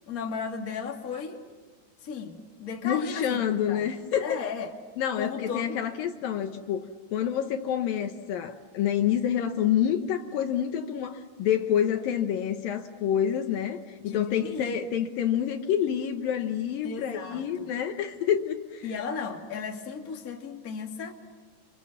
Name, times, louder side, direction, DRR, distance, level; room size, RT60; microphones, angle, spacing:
voice 1, 0.1-1.4 2.0-3.9 4.2-4.7 5.2-5.8 14.0-14.8 16.8-17.7 18.8-21.1, left 5 dB, 30° left, 2 dB, 2.2 m, -35 dB
voice 2, 2.8-4.4 5.0-18.9, left 9 dB, 70° left, 6 dB, 2.7 m, -28 dB
28.5 x 28.5 x 7.3 m, 1.4 s
omnidirectional pair, 4.4 m